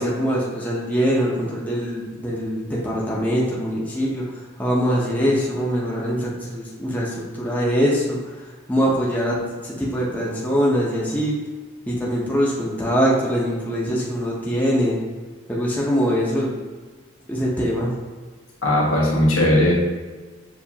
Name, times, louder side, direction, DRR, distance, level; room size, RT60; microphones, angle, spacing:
voice 1, 0.0-11.4 11.9-15.0 15.5-16.5 17.3-17.9, equal, 10° left, -5 dB, 0.7 m, -23 dB
voice 2, 18.6-19.7, left 1 dB, 85° left, -4 dB, 1.3 m, -18 dB
6.8 x 2.5 x 2.8 m, 1.4 s
head